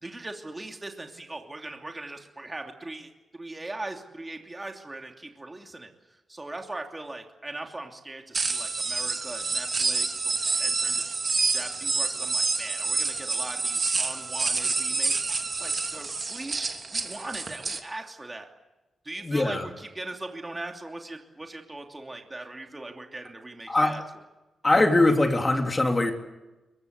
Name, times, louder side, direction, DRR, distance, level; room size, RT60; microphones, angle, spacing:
voice 1, 0.0-10.3 10.6-11.0 11.5-15.3 15.6-18.5 19.0-24.0, right 2 dB, 20° right, 3 dB, 2.9 m, -40 dB
sound 1, 8.3-17.8, right 4 dB, 40° right, 3.0 m, -28 dB
voice 2, 19.2-19.7 23.7-24.0 24.6-26.1, left 2 dB, 25° left, 4 dB, 3.4 m, -22 dB
23.0 x 22.5 x 8.2 m, 1.1 s
cardioid pair, 85°, 0 cm